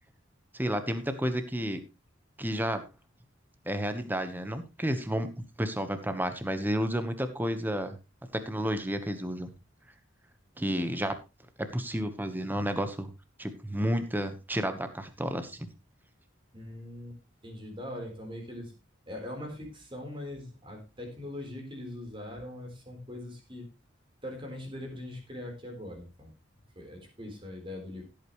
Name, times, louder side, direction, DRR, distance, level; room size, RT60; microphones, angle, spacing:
voice 1, 0.5-1.8 2.4-2.8 3.6-8.0 8.3-9.5 10.6-11.1 11.7-13.1 13.4-15.7, equal, 10° right, 9 dB, 1.2 m, -31 dB
voice 2, 16.5-17.2 17.4-18.7 19.1-23.7 24.2-26.3 26.8-28.0, left 1 dB, 25° right, 2 dB, 4.0 m, -41 dB
16.0 x 8.6 x 3.2 m, 0.26 s
head